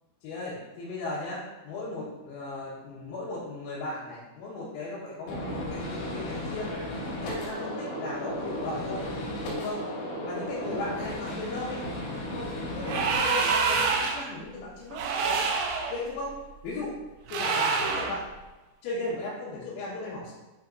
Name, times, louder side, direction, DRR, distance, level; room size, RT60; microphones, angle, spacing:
voice 1, 0.2-6.7 7.1-9.1 9.5-9.9 10.3-11.8 12.3-15.5 15.9-16.4 16.6-16.9 17.3-18.2 18.8-20.3, left 2 dB, 85° left, -10 dB, 4.2 m, -36 dB
Gunshot gunfire, 5.3-13.2, left 1 dB, 70° left, 3.0 m, -34 dB
sound 1, 12.8-14.3 14.9-15.9 17.3-18.2, right 5 dB, 85° right, 3.6 m, -26 dB
9.6 x 5.9 x 2.6 m, 1.1 s
omnidirectional pair, 5.9 m